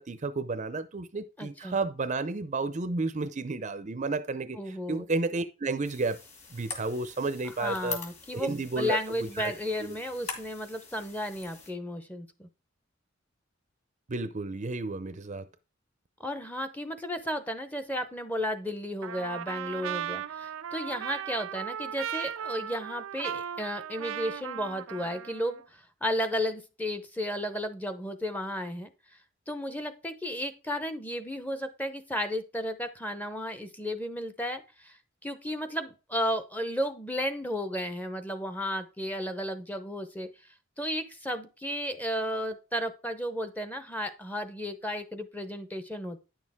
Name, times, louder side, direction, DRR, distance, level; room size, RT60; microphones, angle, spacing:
voice 1, 0.0-6.2 6.5-8.0 8.3-9.0 9.4-9.5 9.8-10.0 14.1-15.5, right 3 dB, 35° right, 0.6 m, -32 dB
voice 2, 1.4-1.8 4.6-5.0 7.6-12.5 16.2-28.9 29.5-35.0 35.2-40.3 40.8-46.2, equal, 10° left, 0.7 m, -33 dB
sound 1, 5.8-11.7, left 4 dB, 35° left, 2.3 m, -43 dB
Trumpet, 19.0-25.6, right 9 dB, 85° right, 0.4 m, -37 dB
9.5 x 6.4 x 3.5 m
head